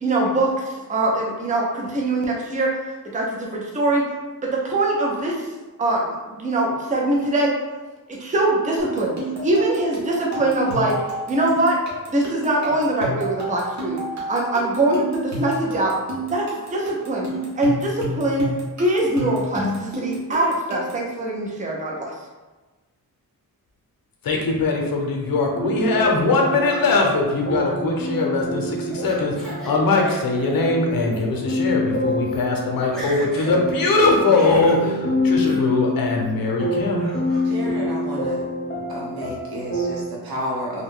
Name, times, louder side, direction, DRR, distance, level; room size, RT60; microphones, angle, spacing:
voice 1, 0.0-2.8 3.1-4.1 4.4-5.4 5.8-7.5 8.1-9.1 9.4-11.0 11.3-11.8 12.1-14.0 14.3-15.9 16.3-17.3 17.6-22.1, right 2 dB, 20° right, -2 dB, 0.4 m, -22 dB
sound 1, 8.8-21.1, right 1 dB, 50° right, 0.8 m, -31 dB
voice 2, 24.2-37.1, left 3 dB, 70° left, 0 dB, 0.7 m, -21 dB
sound 2, 25.5-40.0, left 1 dB, 30° left, 0.5 m, -27 dB
Laughter, 28.2-29.7 30.0-30.7 31.1-31.2 31.9-32.0 32.2-32.5 32.8-33.6 33.9-34.8 35.4-35.7 36.1-36.5 37.0-37.5, right 1 dB, ahead, 0.7 m, -39 dB
voice 3, 37.4-38.5 38.9-40.8, equal, 85° right, -4 dB, 0.9 m, -31 dB
2.6 x 2.2 x 3.6 m, 1.2 s
wide cardioid pair, 175°, 36 cm